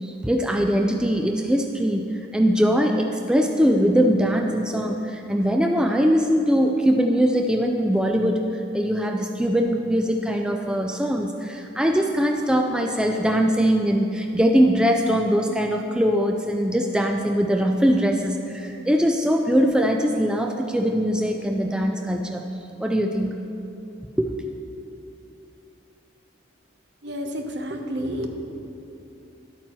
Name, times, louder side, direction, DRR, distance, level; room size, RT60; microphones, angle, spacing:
voice 1, 0.0-22.4 22.8-23.4 24.2-24.3, equal, 5° right, 2 dB, 0.3 m, -21 dB
voice 2, 27.0-28.3, equal, 65° right, 4 dB, 0.8 m, -30 dB
11.5 x 8.6 x 3.1 m, 2.9 s
head